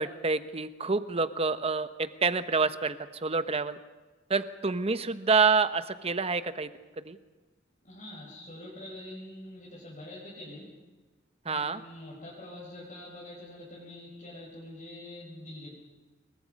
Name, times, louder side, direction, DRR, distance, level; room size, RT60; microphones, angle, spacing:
voice 1, 0.0-3.8 4.3-6.7 7.0-7.2 11.4-11.8, right 4 dB, 30° right, 11 dB, 1.1 m, -27 dB
voice 2, 7.8-10.7 11.4-15.8, left 1 dB, 40° left, -6 dB, 6.2 m, -45 dB
27.5 x 23.5 x 5.4 m, 1.3 s
head